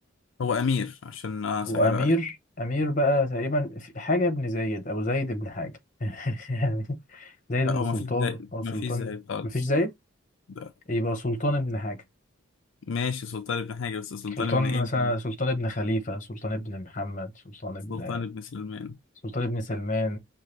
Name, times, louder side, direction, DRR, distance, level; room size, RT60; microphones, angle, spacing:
voice 1, 0.4-2.2 7.6-9.6 10.5-10.7 12.9-15.1 17.9-19.0, left 5 dB, 70° left, 0.4 m, -31 dB
voice 2, 1.7-5.7 6.0-9.1 9.5-9.9 10.9-12.0 14.4-18.2 19.2-20.2, left 1 dB, 35° left, 1.0 m, -28 dB
5.5 x 2.4 x 3.2 m
head